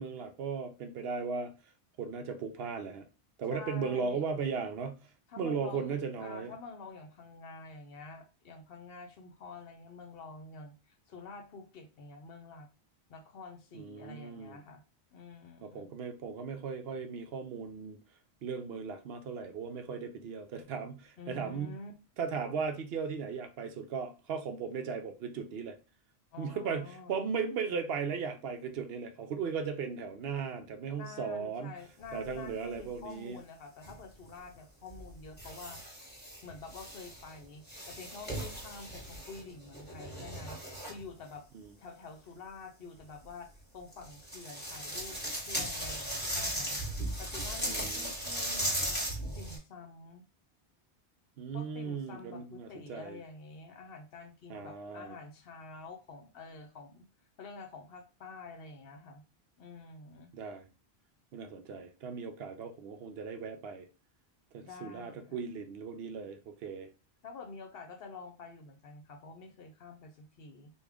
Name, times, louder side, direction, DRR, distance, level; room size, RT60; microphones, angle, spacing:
voice 1, 0.0-1.5 2.0-3.0 3.4-5.0 5.4-6.5 13.7-14.6 15.6-18.0 18.4-21.8 22.2-25.8 26.4-31.8 32.1-33.4 41.5-41.7 47.6-48.1 51.4-53.2 54.5-55.1 60.3-60.7 61.3-63.9 64.5-66.9, right 5 dB, 70° right, 0.8 m, -37 dB
voice 2, 3.5-4.3 5.3-12.7 13.1-14.8 15.1-15.9 21.2-21.9 26.3-27.2 31.0-36.1 36.4-41.4 41.8-46.8 47.2-49.0 49.4-50.3 51.5-57.1 57.4-59.2 59.6-60.3 64.6-65.4 67.2-70.7, left 4 dB, 65° left, 0.8 m, -48 dB
sound 1, 32.0-32.8 33.8-34.0 34.9-37.3 37.7-41.0 43.9-49.6, right 1 dB, 10° left, 1.2 m, -37 dB
3.5 x 2.3 x 3.4 m
omnidirectional pair, 1.1 m